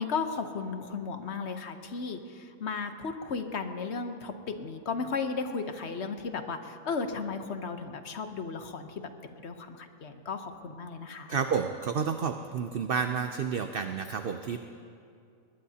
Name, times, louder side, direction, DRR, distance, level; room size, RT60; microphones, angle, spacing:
voice 1, 0.0-9.0 9.4-11.4, left 5 dB, 55° left, 7 dB, 1.1 m, -35 dB
voice 2, 11.3-14.6, right 6 dB, 55° right, 7 dB, 0.6 m, -30 dB
20.5 x 20.0 x 2.8 m, 2.4 s
omnidirectional pair, 1.5 m